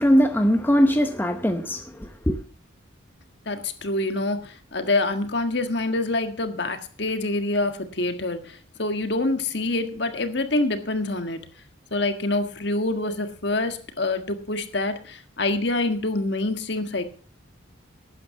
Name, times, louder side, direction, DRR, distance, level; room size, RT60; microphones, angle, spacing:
voice 1, 0.0-1.8 2.3-2.4, equal, 10° left, 0.7 m, -20 dB
voice 2, 3.4-11.4 11.9-17.0, left 2 dB, 55° left, 1.6 m, -26 dB
12.5 x 9.2 x 5.7 m
head